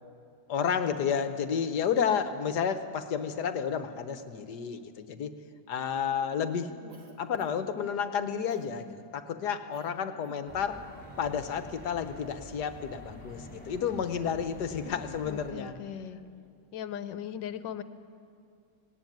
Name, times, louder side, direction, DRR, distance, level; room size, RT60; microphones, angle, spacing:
voice 1, 0.5-5.3 5.7-6.7 7.2-10.8 11.2-15.7, left 7 dB, 65° left, 9 dB, 1.6 m, -31 dB
voice 2, 6.3-6.9 14.8-16.2 16.7-17.8, left 9 dB, 85° left, 12 dB, 1.5 m, -40 dB
Cough, 6.9-7.8 8.5-8.7 9.7-9.9 10.2-10.4, right 2 dB, 60° right, 2.6 m, -52 dB
sound 1, 10.5-15.5, left 1 dB, 5° left, 5.1 m, -48 dB
19.0 x 18.0 x 9.3 m, 2.4 s
omnidirectional pair, 1.9 m